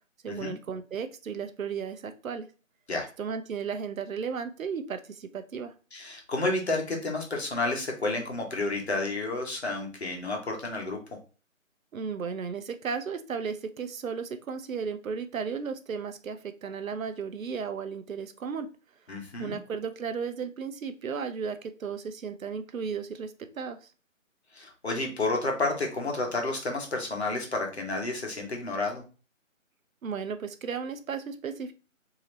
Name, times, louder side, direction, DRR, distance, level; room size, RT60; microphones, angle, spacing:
voice 1, 0.2-2.5 3.2-5.7 11.9-18.7 19.4-23.9 30.0-31.7, right 6 dB, 80° right, 9 dB, 0.6 m, -34 dB
voice 2, 5.9-11.0 19.1-19.6 24.5-29.0, left 2 dB, 50° left, 1 dB, 1.0 m, -30 dB
2.8 x 2.7 x 3.1 m, 0.35 s
figure-of-eight pair, 170°, 40 cm